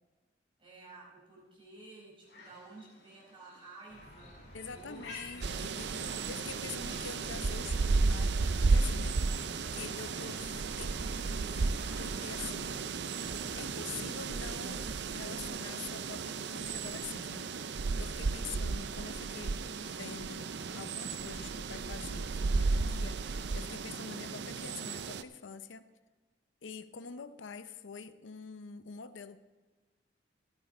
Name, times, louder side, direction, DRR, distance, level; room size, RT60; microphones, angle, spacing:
voice 1, 0.6-5.1 5.5-6.4, right 3 dB, 30° right, -5 dB, 4.7 m, -53 dB
sound 1, 2.2-7.5, left 3 dB, 65° left, 2.6 m, -53 dB
sound 2, 3.9-14.3, equal, 45° left, 4.5 m, -50 dB
voice 2, 4.5-5.9 6.3-9.2 9.7-11.0 11.5-12.8 13.6-20.5 20.7-25.9 26.6-29.4, left 6 dB, 85° left, 12 dB, 0.6 m, -46 dB
sound 3, 5.4-25.2, right 4 dB, 65° right, 0.5 m, -33 dB
14.0 x 12.0 x 4.2 m, 1.3 s
head